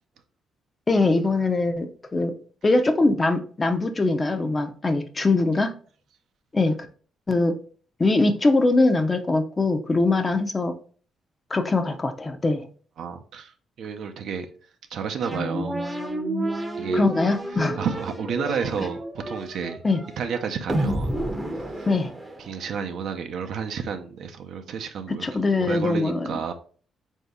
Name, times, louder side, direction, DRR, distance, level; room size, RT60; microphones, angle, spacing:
voice 1, 0.9-2.3 2.6-5.7 6.5-6.8 7.3-7.6 8.0-10.7 11.5-12.6 16.9-17.8 19.8-20.0 21.9-22.1 25.1-26.4, left 2 dB, 25° left, 0.5 m, -22 dB
voice 2, 13.0-14.5 14.9-15.8 16.8-17.0 17.8-19.8 20.2-21.1 21.5-21.9 22.4-25.3 25.6-26.5, right 6 dB, 70° right, 0.5 m, -31 dB
sound 1, 15.2-22.7, right 1 dB, 15° right, 0.6 m, -30 dB
3.8 x 2.7 x 3.5 m
cardioid pair, 90°, 0 cm